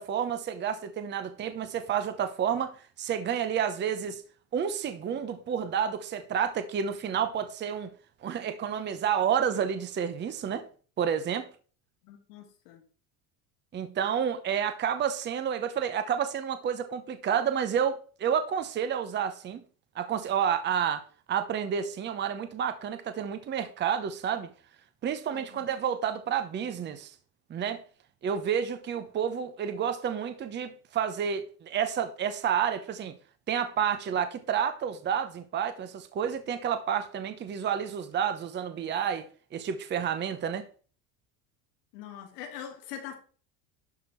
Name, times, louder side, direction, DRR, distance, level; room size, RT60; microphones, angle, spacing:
voice 1, 0.0-4.2 4.5-7.9 8.2-10.7 11.0-11.5 13.7-19.6 19.9-24.5 25.0-27.1 27.5-27.8 28.2-33.1 33.5-40.7, right 8 dB, 25° right, 0.8 m, -30 dB
voice 2, 12.0-12.8 25.3-25.7 41.9-43.2, left 9 dB, 85° left, 2.6 m, -43 dB
11.5 x 4.4 x 4.5 m
cardioid pair, 140°, 45 cm